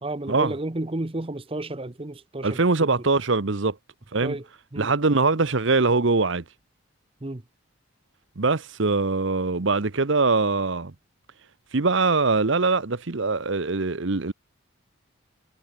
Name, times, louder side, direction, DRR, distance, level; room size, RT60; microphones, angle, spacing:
voice 1, 0.0-2.9 4.2-4.4 4.7-4.9 7.2-7.4, right 2 dB, 25° right, 0.8 m, -32 dB
voice 2, 2.4-3.8 4.1-4.4 4.8-6.4 8.4-10.9 11.7-14.3, right 3 dB, 60° right, 1.0 m, -22 dB
head